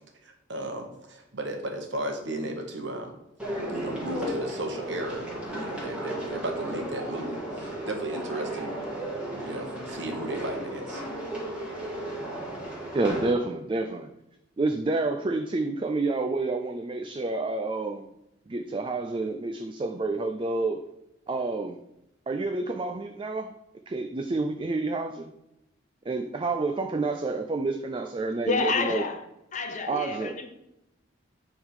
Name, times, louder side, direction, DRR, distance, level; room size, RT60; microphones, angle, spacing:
voice 1, 0.2-3.1 3.7-8.7 9.3-11.0, right 1 dB, 60° right, 1.3 m, -35 dB
sound 1, 3.4-13.3, right 1 dB, 5° right, 2.1 m, -34 dB
voice 2, 12.9-14.1 14.6-18.1 18.5-20.8 21.3-21.8 22.3-23.5 23.9-25.3 26.1-29.0 29.9-30.4, right 3 dB, 25° right, 0.4 m, -29 dB
voice 3, 28.4-29.2 29.5-30.5, left 3 dB, 40° left, 0.8 m, -28 dB
9.4 x 3.7 x 4.8 m
head